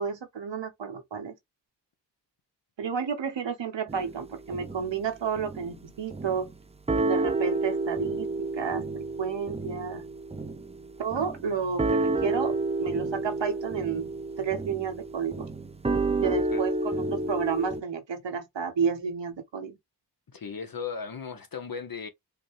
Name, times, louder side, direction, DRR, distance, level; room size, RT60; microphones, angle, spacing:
voice 1, 0.0-1.3 2.8-6.5 7.0-10.0 11.0-14.1 14.4-15.5 16.2-19.8, right 6 dB, 80° right, 1.1 m, -31 dB
sound 1, 3.9-5.0 5.4-5.7 6.1-6.6 6.9-17.8, right 2 dB, 15° right, 0.5 m, -30 dB
voice 2, 16.3-16.6 20.3-22.1, left 6 dB, 50° left, 0.9 m, -36 dB
5.1 x 2.2 x 3.1 m
cardioid pair, 45°, 43 cm